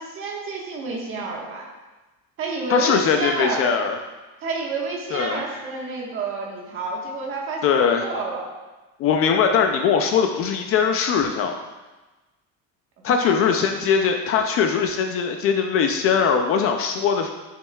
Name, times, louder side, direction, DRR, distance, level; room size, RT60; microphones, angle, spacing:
voice 1, 0.0-1.7 2.4-3.7 4.4-8.5 13.0-13.7, right 3 dB, 40° right, -2 dB, 1.4 m, -29 dB
voice 2, 2.7-4.0 5.1-5.4 7.6-8.0 9.0-11.6 13.0-17.3, left 6 dB, 40° left, 5 dB, 0.4 m, -21 dB
9.1 x 6.5 x 2.3 m, 1.2 s
cardioid pair, 180°, 34 cm